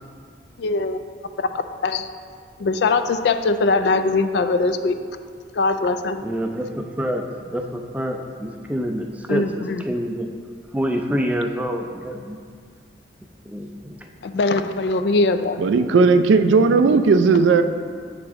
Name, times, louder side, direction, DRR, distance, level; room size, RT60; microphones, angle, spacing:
voice 1, 0.6-1.0 1.4-1.5 1.8-2.1 2.6-4.9 5.6-6.2 9.3-9.8 14.2-15.6, left 3 dB, 65° left, 9 dB, 0.3 m, -21 dB
voice 2, 6.2-7.3 7.5-10.3 10.7-12.4 13.5-14.0, equal, 10° right, 3 dB, 0.4 m, -27 dB
voice 3, 15.6-17.6, right 4 dB, 85° right, 9 dB, 0.4 m, -16 dB
7.9 x 5.0 x 3.6 m, 2.1 s
head